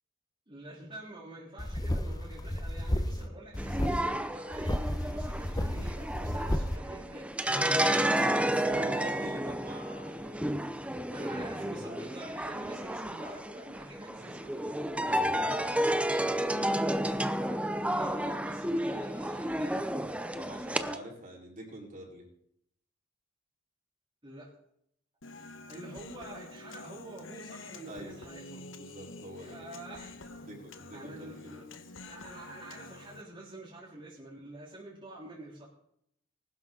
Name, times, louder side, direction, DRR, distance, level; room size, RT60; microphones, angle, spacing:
voice 1, 0.5-7.3 11.1-14.8 17.9-20.1 24.2-24.5 25.7-28.7 29.4-30.3 30.9-35.7, right 2 dB, 25° right, -6 dB, 3.5 m, -47 dB
sound 1, 1.6-3.3 3.5-4.0 4.5-6.8, left 1 dB, 20° left, 0.9 m, -32 dB
sound 2, 3.6-21.0, right 1 dB, 5° right, 0.7 m, -31 dB
voice 2, 7.4-10.7 11.2-11.7 15.0-15.9 20.3-22.3 27.9-28.2 28.8-29.6 30.5-31.5, right 1 dB, 40° right, -2 dB, 4.5 m, -46 dB
Human voice, 25.2-33.2, left 2 dB, 70° left, 1.2 m, -47 dB
20.0 x 12.0 x 3.9 m, 0.72 s
head